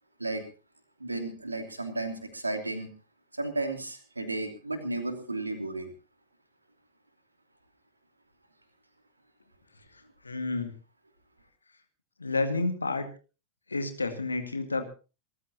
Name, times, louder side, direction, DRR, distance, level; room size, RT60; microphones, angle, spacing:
voice 1, 1.0-2.9 3.3-5.9, right 2 dB, 80° right, 6 dB, 2.8 m, -33 dB
voice 2, 10.2-10.7 12.2-13.1 13.7-14.8, left 3 dB, 80° left, 8 dB, 2.0 m, -30 dB
27.5 x 14.0 x 2.8 m, 0.33 s
figure-of-eight pair, 90°, 0 cm